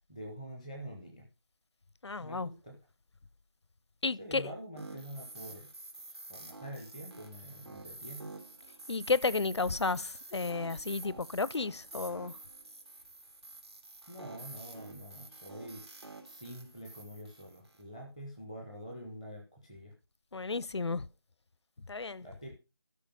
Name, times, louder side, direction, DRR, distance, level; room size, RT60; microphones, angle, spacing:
voice 1, 0.1-1.3 2.2-2.8 4.2-5.7 6.1-8.3 14.1-15.8 16.2-19.9 22.2-22.6, equal, 5° right, 0.6 m, -46 dB
voice 2, 2.0-2.5 4.0-4.5 8.9-12.3 20.3-21.1 21.9-22.2, left 4 dB, 80° left, 0.6 m, -32 dB
sound 1, 4.8-17.8, right 2 dB, 75° right, 3.1 m, -48 dB
13.0 x 5.2 x 5.2 m
figure-of-eight pair, 170°, 14 cm